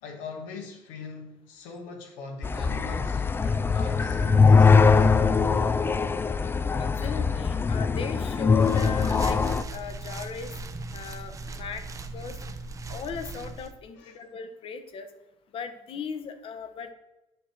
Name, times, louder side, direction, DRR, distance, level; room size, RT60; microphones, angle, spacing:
voice 1, 0.0-5.1 13.9-14.2, left 4 dB, 85° left, 3 dB, 1.4 m, -41 dB
sound 1, 2.4-9.6, left 5 dB, 20° left, 0.4 m, -22 dB
voice 2, 6.8-9.4 9.7-10.5 10.9-11.8 12.1-12.3 12.9-15.1 15.5-16.9, left 6 dB, 50° left, 9 dB, 1.0 m, -37 dB
sound 2, 8.5-13.7, right 3 dB, 30° right, 0.7 m, -38 dB
8.9 x 3.0 x 5.7 m, 0.96 s
supercardioid pair, 90°, 12 cm